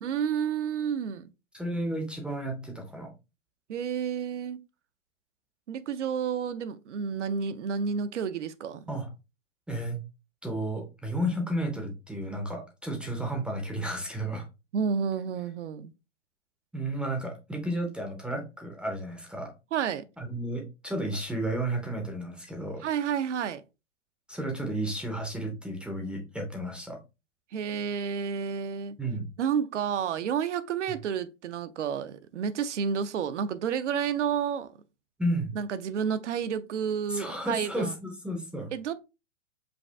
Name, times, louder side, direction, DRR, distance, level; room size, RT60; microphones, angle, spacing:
voice 1, 0.0-1.3 3.7-4.6 5.7-8.8 14.7-15.9 19.7-20.0 22.8-23.6 27.5-29.0 29.4-34.7 35.5-37.9 38.7-38.9, right 7 dB, 70° right, 0.6 m, -30 dB
voice 2, 1.5-3.1 8.9-9.1 9.7-10.0 10.4-14.4 16.7-19.5 20.2-22.8 24.3-27.0 29.0-29.3 35.2-35.5 37.1-38.7, right 1 dB, 5° right, 0.5 m, -32 dB
5.1 x 2.4 x 3.3 m
hypercardioid pair, 120°, 37 cm